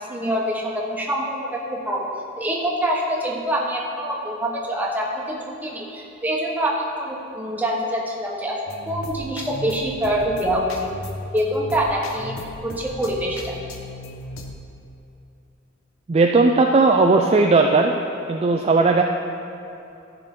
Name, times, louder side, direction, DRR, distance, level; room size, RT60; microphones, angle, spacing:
voice 1, 0.1-2.1 2.4-8.6 8.9-10.9 11.3-12.3 12.6-13.5, equal, 10° right, -3 dB, 1.2 m, -25 dB
sound 1, 8.7-14.5, left 1 dB, 90° left, 0.8 m, -36 dB
voice 2, 16.1-17.9 18.3-19.0, right 3 dB, 30° right, 2 dB, 0.4 m, -16 dB
14.0 x 5.9 x 3.8 m, 2.8 s
head